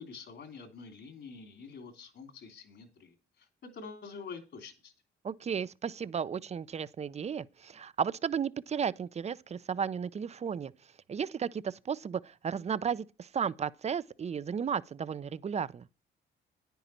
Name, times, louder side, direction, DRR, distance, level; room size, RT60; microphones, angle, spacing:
voice 1, 0.0-4.9, left 5 dB, 65° left, 3.0 m, -47 dB
voice 2, 5.2-10.7 11.1-15.9, right 7 dB, 35° right, 0.5 m, -34 dB
9.9 x 9.1 x 4.4 m
cardioid pair, 90°, 20 cm